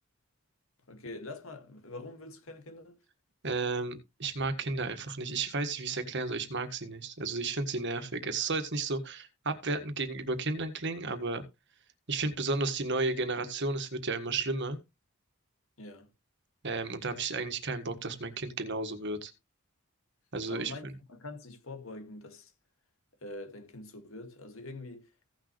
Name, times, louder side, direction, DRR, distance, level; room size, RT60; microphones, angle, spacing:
voice 1, 0.9-3.0 15.8-16.1 20.5-22.5 23.2-25.1, left 2 dB, 70° left, 2.0 m, -44 dB
voice 2, 3.4-11.4 12.1-14.8 16.6-19.3 20.3-20.9, right 3 dB, 55° right, 1.6 m, -33 dB
16.0 x 6.5 x 3.1 m
head